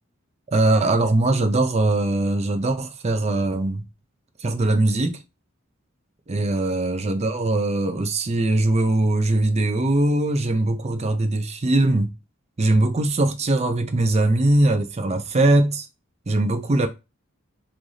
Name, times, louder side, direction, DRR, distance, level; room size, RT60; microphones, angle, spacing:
voice 1, 0.5-3.9 4.4-5.2 6.3-12.1 12.6-15.9 16.3-16.9, right 2 dB, 30° right, 0.5 m, -21 dB
3.2 x 2.6 x 3.8 m
head